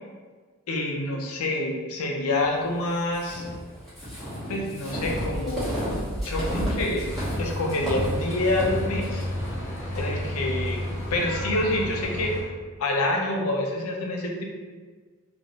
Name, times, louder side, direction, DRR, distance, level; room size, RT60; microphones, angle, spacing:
voice 1, 0.7-3.4 4.5-5.7 6.2-7.0 7.4-9.3 10.0-10.8 11.1-12.5 12.8-14.5, left 1 dB, 75° left, 0 dB, 0.5 m, -27 dB
sound 1, 3.1-11.0, equal, ahead, 1.0 m, -32 dB
sound 2, 7.0-12.4, left 1 dB, 45° left, 0.8 m, -32 dB
3.1 x 2.4 x 2.6 m, 1.5 s
head